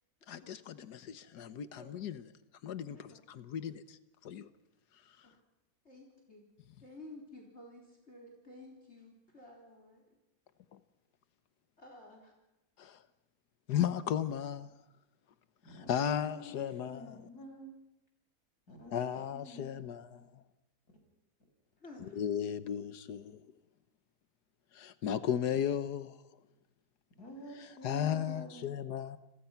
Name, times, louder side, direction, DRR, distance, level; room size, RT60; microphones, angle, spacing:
voice 1, 0.3-2.2 2.6-4.5 10.7-10.8 12.8-13.0 13.7-14.7 15.9-17.2 18.9-20.4 22.0-23.4 24.7-26.2 27.8-29.2, left 9 dB, 90° left, 1.7 m, -35 dB
voice 2, 5.8-6.4 6.8-10.2 11.8-12.3 21.8-22.2, left 2 dB, 40° left, 4.3 m, -53 dB
voice 3, 15.6-17.7 18.7-20.2 20.9-21.0 27.2-28.7, equal, 70° left, 6.5 m, -49 dB
30.0 x 22.0 x 5.9 m
omnidirectional pair, 1.7 m